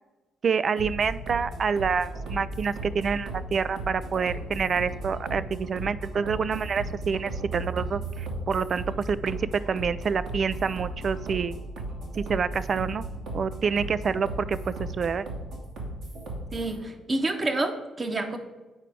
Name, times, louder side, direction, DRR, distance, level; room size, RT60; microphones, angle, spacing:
voice 1, 0.4-11.5 12.2-13.0 13.3-14.6 15.0-15.3, right 6 dB, 50° right, 16 dB, 0.3 m, -27 dB
sound 1, 0.8-16.7, right 2 dB, 70° right, 2.1 m, -36 dB
voice 2, 16.5-18.4, right 2 dB, 35° right, 7 dB, 1.0 m, -28 dB
8.2 x 4.9 x 4.6 m, 1.2 s
hypercardioid pair, 50°, 0 cm